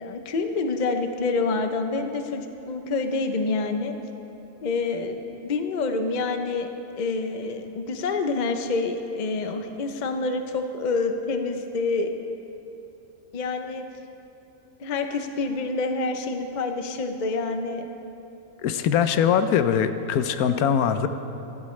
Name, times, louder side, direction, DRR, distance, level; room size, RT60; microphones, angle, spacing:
voice 1, 0.0-3.9 4.6-6.7 7.0-12.1 13.3-13.8 14.8-17.9, left 3 dB, 40° left, 6 dB, 0.7 m, -27 dB
voice 2, 18.6-21.1, left 8 dB, 90° left, 10 dB, 1.1 m, -22 dB
15.5 x 13.5 x 3.2 m, 3.0 s
omnidirectional pair, 1.5 m